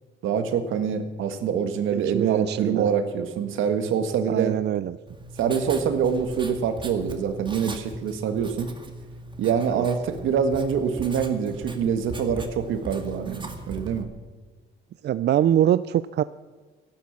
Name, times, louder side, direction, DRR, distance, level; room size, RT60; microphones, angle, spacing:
voice 1, 0.2-4.6 5.4-8.7 9.4-14.1, right 7 dB, 85° right, 8 dB, 1.7 m, -25 dB
voice 2, 1.9-2.9 4.3-5.0 9.7-9.9 15.0-16.2, right 11 dB, 60° right, 15 dB, 0.5 m, -23 dB
Writing, 5.1-14.0, right 1 dB, 25° right, 2.1 m, -39 dB
14.0 x 12.0 x 7.2 m, 1.4 s
cardioid pair, 90°, 20 cm